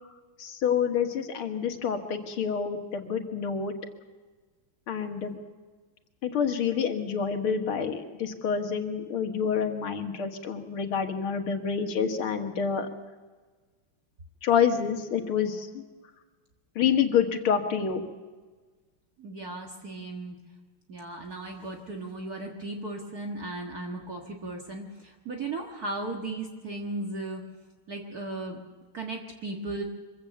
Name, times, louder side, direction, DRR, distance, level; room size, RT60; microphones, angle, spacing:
voice 1, 0.4-3.8 4.9-5.4 6.2-12.9 14.4-15.8 16.8-18.0, left 7 dB, 85° left, 5 dB, 2.4 m, -27 dB
voice 2, 19.2-20.4 20.9-27.4 27.9-28.6 28.9-29.8, right 2 dB, 50° right, 1 dB, 2.0 m, -36 dB
24.0 x 16.0 x 7.0 m, 1.4 s
omnidirectional pair, 2.3 m